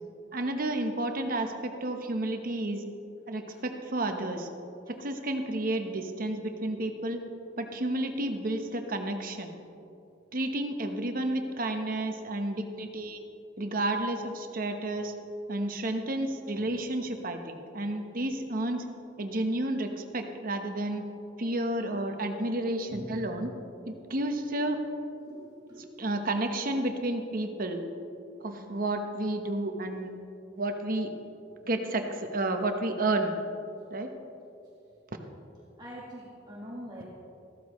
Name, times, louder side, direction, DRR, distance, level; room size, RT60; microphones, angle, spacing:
voice 1, 0.3-2.9 3.3-4.5 4.9-7.2 7.6-9.5 10.3-13.2 13.6-15.1 15.5-18.8 19.2-21.0 21.4-23.5 23.9-24.8 26.0-27.8 28.4-30.1 30.6-31.1 31.6-33.3 33.9-34.1, right 1 dB, 50° right, 5 dB, 1.0 m, -31 dB
voice 2, 22.9-23.2 25.1-26.0 28.4-28.8 35.8-37.0, equal, 25° right, -5 dB, 1.6 m, -44 dB
14.5 x 13.5 x 3.1 m, 2.7 s
head